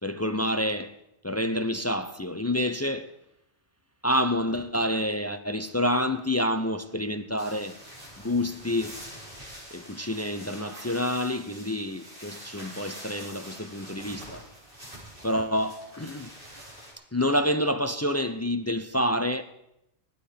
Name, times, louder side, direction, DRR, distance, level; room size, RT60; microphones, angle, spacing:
voice 1, 0.0-1.0 1.2-3.1 4.0-7.8 8.2-9.0 9.7-14.5 15.2-16.3 17.1-19.4, left 1 dB, 25° left, 0.3 m, -28 dB
sound 1, 7.4-16.9, equal, 50° right, 5.1 m, -45 dB
16.0 x 12.0 x 5.1 m
omnidirectional pair, 1.2 m